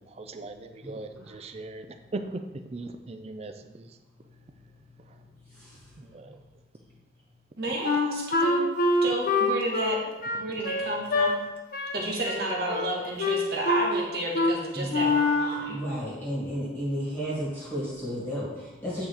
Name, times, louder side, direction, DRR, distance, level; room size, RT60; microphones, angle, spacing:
voice 1, 0.1-4.0 6.0-6.4, right 2 dB, 35° right, 8 dB, 0.4 m, -39 dB
voice 2, 5.5-6.2 14.7-15.1 15.5-19.1, equal, 10° left, -8 dB, 2.0 m, -33 dB
voice 3, 7.6-8.7 9.0-10.0 10.3-11.4 11.9-15.8, right 1 dB, 55° right, -2 dB, 1.3 m, -31 dB
Wind instrument woodwind instrument, 7.8-11.3 11.7-12.0 12.2-12.9 13.2-14.0 14.3-14.6 14.9-15.6, left 2 dB, 45° left, 0.7 m, -25 dB
8.6 x 3.8 x 3.4 m, 1.1 s
head